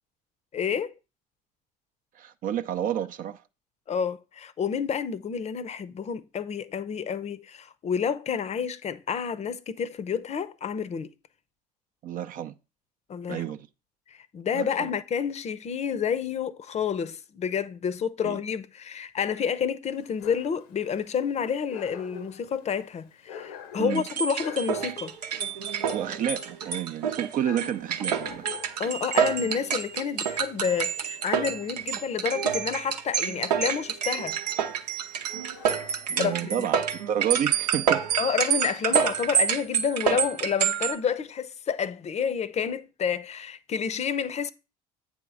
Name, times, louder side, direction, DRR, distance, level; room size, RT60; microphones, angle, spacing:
voice 1, 0.5-0.9 3.9-11.1 13.1-13.4 14.1-25.1 28.8-34.4 36.2-36.7 38.2-44.5, left 7 dB, 35° left, 0.7 m, -29 dB
voice 2, 2.1-3.4 12.0-12.5 13.3-13.7 14.5-14.9 18.2-18.4 23.8-24.0 25.9-28.4 36.1-36.8 37.1-38.0, right 10 dB, 40° right, 0.5 m, -30 dB
Dog, 19.9-35.9, left 8 dB, 65° left, 0.9 m, -47 dB
sound 1, 23.9-40.9, right 8 dB, 80° right, 0.7 m, -28 dB
8.3 x 3.6 x 6.2 m
figure-of-eight pair, 60°, 21 cm